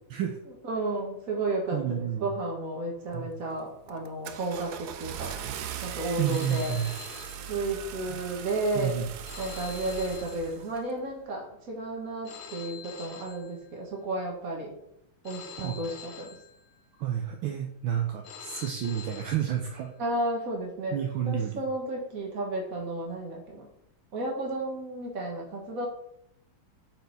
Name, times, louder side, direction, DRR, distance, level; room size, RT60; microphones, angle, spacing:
voice 1, 0.6-5.3 5.8-6.8 7.5-9.0 9.4-14.7 15.2-16.4 20.0-21.0 21.3-23.7 24.1-25.9, right 2 dB, 45° right, 0 dB, 1.8 m, -32 dB
voice 2, 1.7-2.3 3.1-3.3 6.2-6.9 8.7-9.1 15.6-15.8 17.0-19.9 20.9-21.6, right 9 dB, 75° right, 2 dB, 1.4 m, -30 dB
Car / Engine starting, 3.1-3.4 3.9-10.8, right 9 dB, 90° right, 0.8 m, -40 dB
Telephone, 6.3-8.1 9.3-11.1 12.2-14.1 15.2-17.1 18.2-20.1, left 7 dB, 85° left, 1.8 m, -46 dB
8.3 x 4.2 x 4.1 m, 0.78 s
omnidirectional pair, 2.4 m